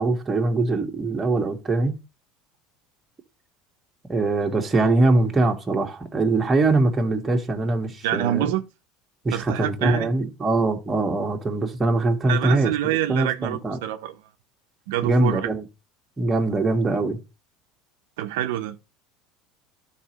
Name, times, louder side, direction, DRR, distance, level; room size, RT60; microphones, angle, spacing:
voice 1, 0.0-2.0 4.1-8.5 9.2-12.7 13.1-13.8 15.0-15.6 16.2-17.2, right 2 dB, 20° right, 1.4 m, -22 dB
voice 2, 8.0-8.6 9.3-10.1 12.3-14.2 14.9-15.5 18.2-18.8, right 13 dB, 85° right, 0.6 m, -26 dB
12.0 x 4.2 x 3.0 m
supercardioid pair, 115°, 0 cm